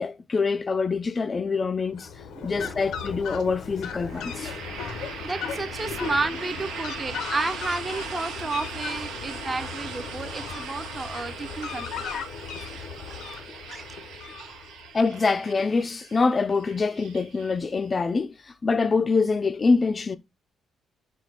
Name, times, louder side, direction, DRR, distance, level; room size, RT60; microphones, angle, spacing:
voice 1, 0.0-2.1 2.4-4.5 14.9-18.3 18.6-20.2, left 4 dB, 35° left, 0.4 m, -25 dB
Fowl, 1.9-14.9, left 6 dB, 80° left, 0.7 m, -37 dB
voice 2, 2.3-2.8 4.9-12.1 13.1-13.2 13.7-13.8, right 3 dB, 25° right, 0.6 m, -32 dB
sound 1, 4.1-17.9, right 6 dB, 90° right, 0.9 m, -40 dB
4.1 x 2.2 x 4.5 m
cardioid pair, 90°, 0 cm